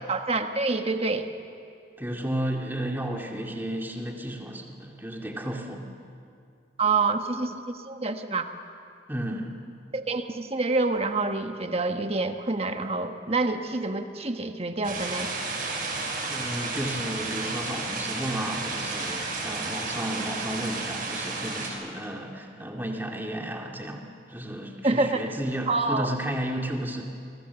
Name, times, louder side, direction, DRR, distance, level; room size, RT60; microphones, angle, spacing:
voice 1, 0.1-1.3 6.8-8.5 9.9-15.3 24.8-25.3 25.7-26.1, right 3 dB, 30° right, 6 dB, 1.3 m, -27 dB
voice 2, 2.0-5.9 9.1-9.5 16.3-27.0, right 1 dB, 10° right, 1 dB, 2.3 m, -33 dB
sound 1, 14.8-21.7, right 3 dB, 50° right, 6.2 m, -32 dB
29.5 x 21.5 x 7.1 m, 2.4 s
head